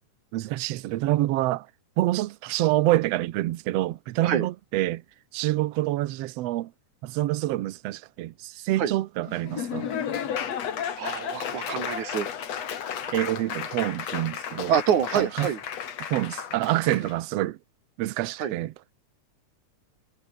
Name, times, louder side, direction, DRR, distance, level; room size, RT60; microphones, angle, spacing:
voice 1, 0.3-1.7 2.0-5.0 5.3-6.7 7.0-9.9 13.1-14.8 15.1-15.5 16.1-17.6 18.0-18.7, right 16 dB, 70° right, 1.8 m, -27 dB
Laughter / Applause, 9.3-17.1, left 8 dB, 65° left, 3.1 m, -33 dB
voice 2, 10.8-12.3 14.7-15.6 17.0-17.1 18.4-18.5, right 8 dB, 90° right, 3.6 m, -26 dB
omnidirectional pair, 3.3 m